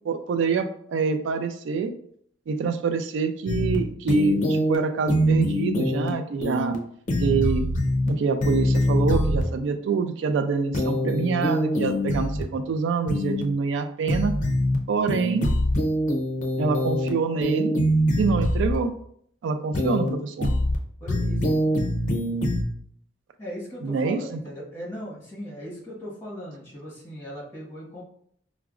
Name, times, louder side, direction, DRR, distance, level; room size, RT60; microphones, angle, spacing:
voice 1, 0.0-1.9 2.5-6.8 7.2-7.6 8.0-14.3 14.9-15.4 16.6-17.7 18.2-18.9 19.4-20.5 23.8-24.4, right 4 dB, 85° right, 8 dB, 0.3 m, -26 dB
sound 1, 3.5-3.8 4.1-4.8 5.1-6.1 6.4-6.8 7.1-8.1 8.4-9.4 10.7-12.4 13.1-13.4 14.1-14.8 15.1-17.1 17.4-18.8 19.7-20.1 20.4-20.8 21.1-22.6, equal, 40° left, 0.5 m, -24 dB
voice 2, 21.0-21.8 23.4-28.0, equal, 10° left, -8 dB, 1.2 m, -38 dB
4.6 x 2.0 x 2.4 m, 0.65 s
head